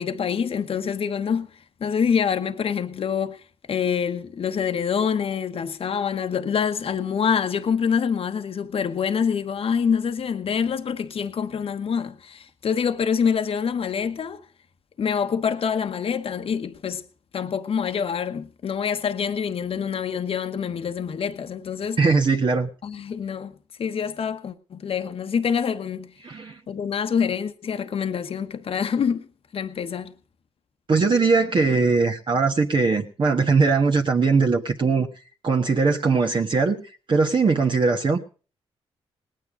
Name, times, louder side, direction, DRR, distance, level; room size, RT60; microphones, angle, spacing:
voice 1, 0.0-3.4 3.7-14.4 15.0-17.0 17.3-22.0 22.8-26.1 26.7-29.3 29.5-30.1, left 7 dB, 60° left, 1.1 m, -26 dB
voice 2, 22.0-22.7 26.2-26.6 30.9-35.1 35.4-36.8 37.1-38.2, right 4 dB, 45° right, 1.5 m, -20 dB
19.0 x 9.4 x 5.1 m
cardioid pair, 70°, 11 cm